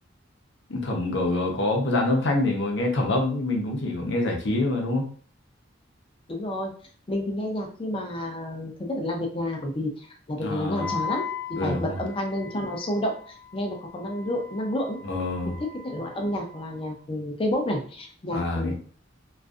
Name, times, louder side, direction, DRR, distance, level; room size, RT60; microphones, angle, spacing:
voice 1, 0.7-5.1 10.4-10.9 11.6-12.0 15.0-15.6 18.3-18.8, left 2 dB, 65° left, 1 dB, 0.7 m, -26 dB
voice 2, 6.3-6.7 7.1-9.9 10.3-15.0 15.4-18.8, left 1 dB, 30° left, 2 dB, 0.5 m, -30 dB
Wind instrument woodwind instrument, 10.7-16.9, left 6 dB, 50° right, 0.7 m, -39 dB
2.5 x 2.4 x 2.4 m, 0.43 s
head